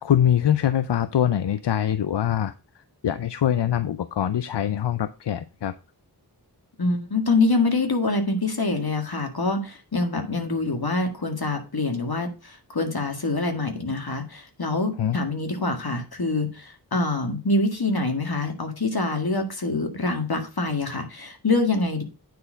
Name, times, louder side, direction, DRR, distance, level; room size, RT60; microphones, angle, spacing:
voice 1, 0.0-2.5 3.0-5.7 15.0-15.2, left 10 dB, 85° left, 13 dB, 0.5 m, -23 dB
voice 2, 6.8-22.0, left 3 dB, 65° left, 5 dB, 1.8 m, -25 dB
9.3 x 4.4 x 5.0 m, 0.31 s
wide cardioid pair, 45°, 40 cm